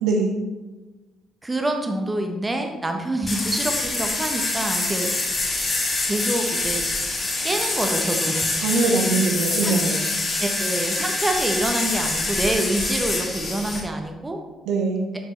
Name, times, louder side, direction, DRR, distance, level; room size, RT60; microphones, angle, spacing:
voice 1, 1.4-5.1 6.1-6.8 7.4-8.5 9.5-9.7 10.4-14.4, right 1 dB, 20° right, 4 dB, 1.1 m, -26 dB
sound 1, 3.3-13.8, left 2 dB, 35° left, 1.7 m, -25 dB
voice 2, 8.6-10.0 14.7-15.0, right 3 dB, 65° right, 1 dB, 0.8 m, -22 dB
7.9 x 6.3 x 3.3 m, 1.2 s
figure-of-eight pair, 45°, 0 cm